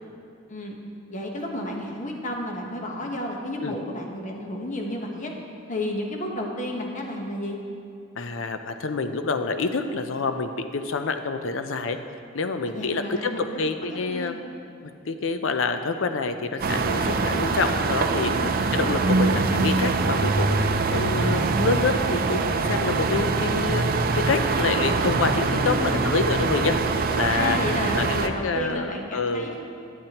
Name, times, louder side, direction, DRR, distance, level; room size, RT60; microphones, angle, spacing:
voice 1, 1.1-5.3 5.7-7.6 12.6-13.6 13.9-14.4 18.2-18.6 25.5-26.1 27.3-29.6, left 1 dB, 40° left, 1 dB, 1.1 m, -32 dB
voice 2, 8.2-12.0 12.3-14.3 14.8-18.3 18.7-23.8 24.1-26.8 27.1-27.6 27.9-29.6, left 4 dB, 70° left, 8 dB, 0.6 m, -27 dB
sound 1, 16.6-28.3, right 3 dB, 50° right, 0.5 m, -24 dB
12.0 x 9.4 x 2.9 m, 2.6 s
head